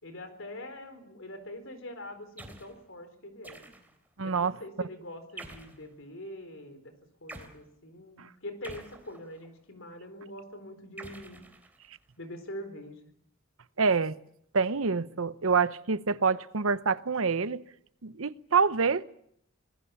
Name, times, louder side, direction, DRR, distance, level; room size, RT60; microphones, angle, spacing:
voice 1, 0.0-3.6 4.2-6.9 7.2-11.4 12.2-13.0, left 1 dB, 65° left, 4.2 m, -44 dB
sound 1, 2.4-2.8 3.4-4.1 5.4-5.8 7.3-7.6 8.6-9.5 11.0-12.0, right 2 dB, 10° right, 3.3 m, -47 dB
voice 2, 4.2-4.5 8.2-8.3 13.8-14.2 14.5-17.6 18.0-19.0, right 5 dB, 80° right, 0.9 m, -26 dB
26.0 x 20.0 x 7.1 m
head